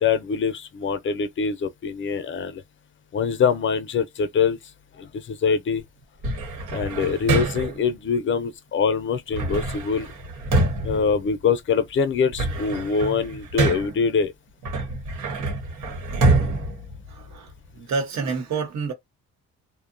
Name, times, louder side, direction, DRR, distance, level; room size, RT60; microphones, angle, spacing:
voice 1, 0.0-2.6 3.1-4.6 5.0-5.8 6.7-10.1 10.8-14.3, left 6 dB, 40° left, 0.6 m, -24 dB
sound 1, 6.2-7.9 9.3-11.8 12.1-14.1 14.6-17.7, right 2 dB, 90° right, 1.2 m, -26 dB
voice 2, 17.1-18.9, right 5 dB, 65° right, 1.0 m, -29 dB
2.7 x 2.2 x 2.5 m
cardioid pair, 90°, 30 cm